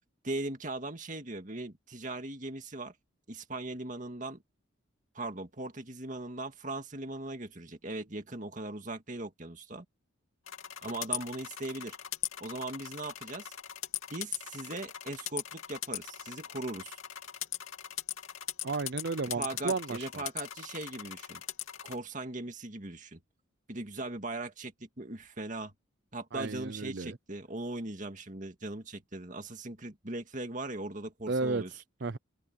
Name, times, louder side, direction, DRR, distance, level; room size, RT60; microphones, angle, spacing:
voice 1, 0.2-2.9 3.3-4.4 5.1-9.9 10.8-12.0 12.4-13.5 14.1-17.0 19.4-21.4 21.8-23.2 23.7-25.7 26.1-31.7, right 2 dB, 40° right, 2.1 m, -39 dB
sound 1, 10.5-22.0, left 11 dB, 75° left, 2.7 m, -39 dB
voice 2, 18.6-20.2 26.3-27.2 31.3-31.6 32.0-32.2, right 3 dB, 55° right, 0.7 m, -33 dB
open air
head